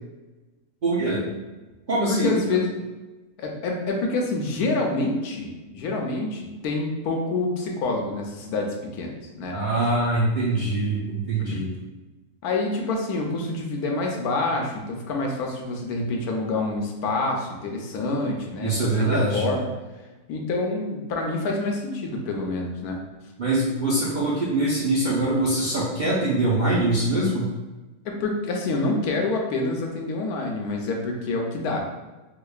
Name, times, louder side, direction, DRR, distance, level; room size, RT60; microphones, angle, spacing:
voice 1, 0.8-1.3 1.9-2.6 9.5-11.7 18.6-19.5 23.4-27.5, right 2 dB, 55° right, -8 dB, 0.5 m, -23 dB
voice 2, 2.1-2.7 3.4-9.6 11.5-11.6 12.4-19.7 20.3-23.0 28.0-31.8, left 2 dB, 75° left, 1 dB, 1.1 m, -27 dB
4.8 x 2.4 x 2.3 m, 1.2 s
omnidirectional pair, 1.6 m